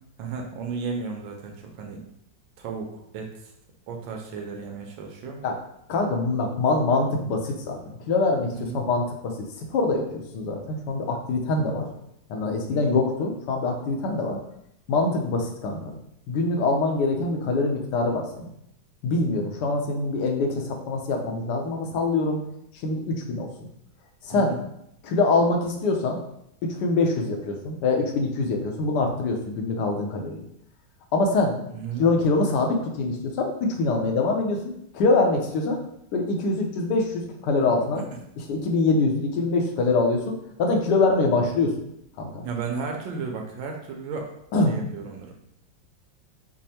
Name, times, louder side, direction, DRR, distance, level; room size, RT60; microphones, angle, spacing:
voice 1, 0.2-2.0 2.6-3.5 3.9-5.4 8.5-8.8 11.5-11.7 12.7-13.0 24.3-24.6 31.7-32.1 38.0-38.1 42.4-44.3 44.7-45.3, right 5 dB, 85° right, 2 dB, 1.3 m, -34 dB
voice 2, 5.9-7.8 8.1-9.3 9.6-11.9 12.3-14.4 14.9-15.9 16.3-18.5 19.0-22.4 22.8-23.7 24.2-24.6 25.0-26.2 26.6-30.4 31.1-31.6 32.0-34.6 34.9-35.8 36.1-38.0 38.4-40.3 40.6-41.8 42.2-42.4 44.5-44.8, left 3 dB, 70° left, 2 dB, 1.1 m, -24 dB
5.2 x 2.0 x 2.8 m, 0.76 s
omnidirectional pair, 2.1 m